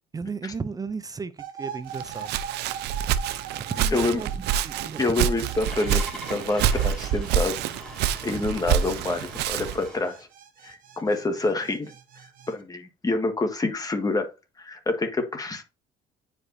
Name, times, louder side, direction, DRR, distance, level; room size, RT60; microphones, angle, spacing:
voice 1, 0.1-2.4 3.7-5.4 8.2-8.5, right 5 dB, 20° right, 0.5 m, -35 dB
sound 1, 1.4-12.5, right 8 dB, 55° right, 1.4 m, -41 dB
Walk footsteps, 1.9-9.9, right 9 dB, 80° right, 0.6 m, -27 dB
voice 2, 5.0-7.6 8.2-10.3 10.6-14.3 14.6-15.6, left 2 dB, 20° left, 1.6 m, -27 dB
Engine starting, 5.6-10.2, equal, 5° left, 2.8 m, -42 dB
9.7 x 5.0 x 2.7 m
cardioid pair, 110°, 17 cm